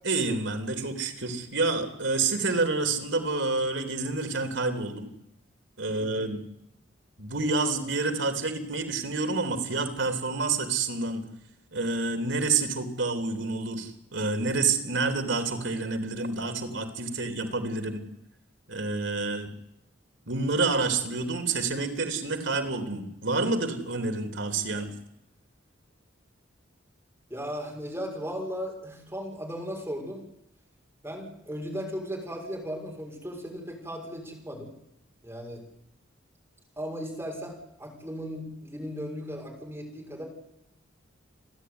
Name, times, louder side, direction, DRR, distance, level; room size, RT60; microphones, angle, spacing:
voice 1, 0.0-5.1 5.8-6.4 7.2-11.2 11.7-18.0 18.7-19.5 20.3-24.9, right 3 dB, 75° right, 7 dB, 3.4 m, -28 dB
voice 2, 5.9-6.3 27.3-30.2 31.0-34.7 35.2-35.6 36.8-40.3, equal, 10° right, -1 dB, 6.4 m, -36 dB
29.5 x 11.5 x 9.8 m, 0.81 s
head